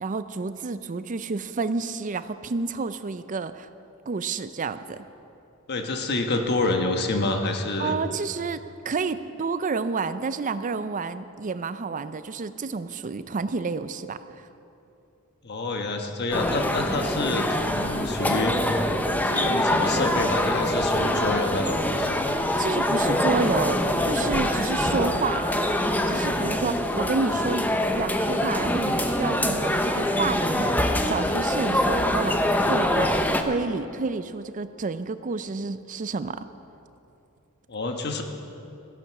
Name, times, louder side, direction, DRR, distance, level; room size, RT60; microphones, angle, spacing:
voice 1, 0.0-3.7 4.1-5.0 7.8-8.6 8.8-14.5 22.6-25.4 26.1-27.7 27.9-36.5, right 4 dB, 35° right, 12 dB, 0.5 m, -30 dB
voice 2, 5.7-7.9 15.4-18.6 19.2-22.3 37.7-38.2, left 2 dB, 50° left, 4 dB, 1.3 m, -27 dB
sound 1, 16.3-33.4, left 1 dB, 10° left, 0.7 m, -24 dB
14.5 x 11.0 x 6.0 m, 2.7 s
head